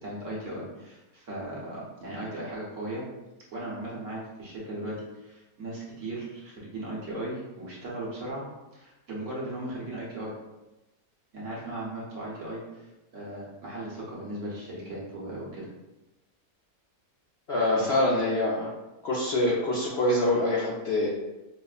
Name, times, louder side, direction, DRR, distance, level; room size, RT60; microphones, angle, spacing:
voice 1, 0.0-3.0 3.5-8.4 8.7-10.3 11.3-12.6 13.1-15.7 17.7-17.9, right 1 dB, 60° right, -5 dB, 1.2 m, -37 dB
voice 2, 17.5-18.7 19.0-21.1, left 1 dB, 60° left, -5 dB, 0.7 m, -25 dB
5.0 x 2.0 x 2.4 m, 1.0 s
omnidirectional pair, 1.6 m